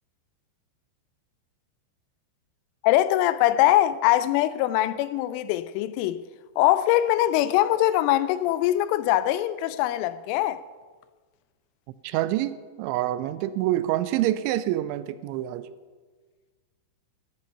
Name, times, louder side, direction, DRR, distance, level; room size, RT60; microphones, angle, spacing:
voice 1, 2.8-6.2 6.6-10.6, left 14 dB, 90° left, 3.1 m, -22 dB
voice 2, 12.0-15.7, right 14 dB, 85° right, 2.9 m, -27 dB
13.0 x 10.5 x 5.7 m
omnidirectional pair, 5.5 m